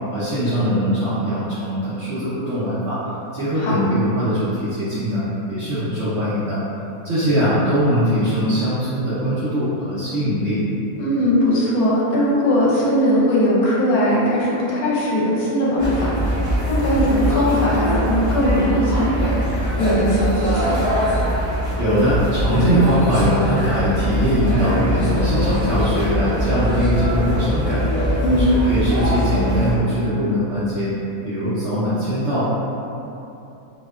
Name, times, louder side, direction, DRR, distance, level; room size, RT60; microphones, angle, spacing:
voice 1, 0.1-3.0 3.3-5.2 5.5-6.6 7.0-10.6 21.8-27.8 28.3-30.9 31.2-32.5, equal, 65° right, -12 dB, 0.7 m, -21 dB
voice 2, 11.0-16.4 16.7-20.8 28.2-28.5, equal, 75° left, -6 dB, 1.0 m, -19 dB
sound 1, 15.8-29.7, equal, 10° right, 0.6 m, -22 dB
2.7 x 2.1 x 2.2 m, 2.8 s
omnidirectional pair, 1.7 m